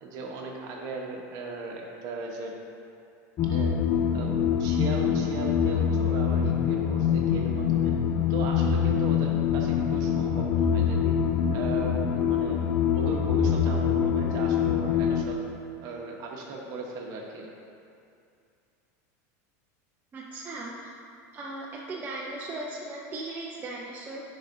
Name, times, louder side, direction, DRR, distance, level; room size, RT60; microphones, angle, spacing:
voice 1, 0.0-2.5 3.5-3.7 4.1-4.3 4.6-7.9 8.3-11.1 11.5-12.6 12.9-15.4 15.8-17.5, right 3 dB, 45° right, 0 dB, 1.0 m, -37 dB
sound 1, 3.4-15.2, left 8 dB, 30° left, 0.4 m, -25 dB
voice 2, 20.1-20.9 21.3-24.2, right 2 dB, 20° right, -3 dB, 0.5 m, -37 dB
10.5 x 4.8 x 2.7 m, 2.5 s
supercardioid pair, 140°, 9 cm